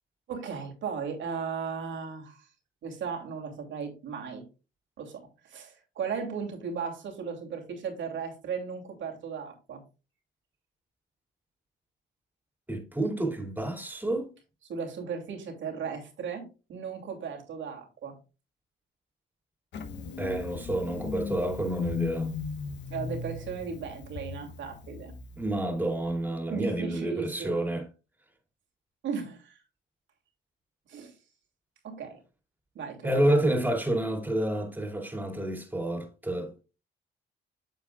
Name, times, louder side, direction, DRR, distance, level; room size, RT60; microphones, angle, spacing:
voice 1, 0.3-2.5 2.8-4.4 5.0-9.8 14.7-18.2 22.9-25.1 26.5-27.6 29.0-29.6 30.9-31.1 31.8-32.2 32.7-33.4, right 6 dB, 75° right, 2.6 m, -36 dB
voice 2, 12.7-14.3 20.2-22.3 25.4-27.9 33.0-36.5, right 1 dB, 10° right, 2.5 m, -29 dB
Engine starting, 19.7-26.2, left 5 dB, 65° left, 1.1 m, -37 dB
9.2 x 7.1 x 2.3 m
cardioid pair, 90°, 20 cm